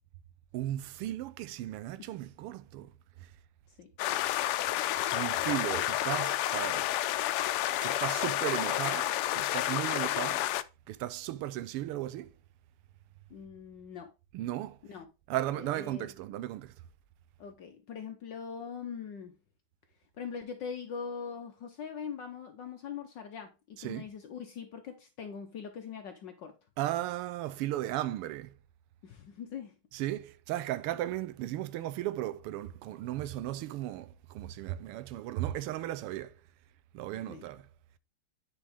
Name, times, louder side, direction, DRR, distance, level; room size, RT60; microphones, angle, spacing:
voice 1, 0.5-2.9 3.2-3.3 5.1-6.9 7.8-10.5 10.9-12.3 14.3-14.8 15.3-16.7 23.8-24.1 26.8-28.5 29.9-36.3 36.9-37.7, right 14 dB, 90° right, 1.6 m, -35 dB
sound 1, 4.0-10.6, left 14 dB, 85° left, 1.5 m, -30 dB
voice 2, 13.3-14.1 14.9-15.1 15.5-16.1 17.4-19.3 20.2-26.5 29.0-29.7 37.3-37.5, left 6 dB, 65° left, 1.4 m, -42 dB
9.7 x 5.0 x 3.5 m
omnidirectional pair, 2.4 m